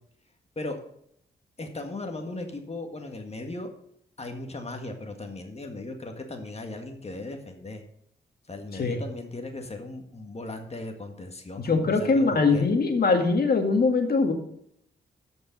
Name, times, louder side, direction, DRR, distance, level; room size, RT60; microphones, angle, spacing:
voice 1, 1.6-3.7 4.2-7.8 8.5-12.7, left 2 dB, 35° left, 4 dB, 1.7 m, -37 dB
voice 2, 11.6-14.3, left 4 dB, 55° left, 4 dB, 2.0 m, -22 dB
13.5 x 5.3 x 5.3 m, 0.71 s
cardioid pair, 80°, 19 cm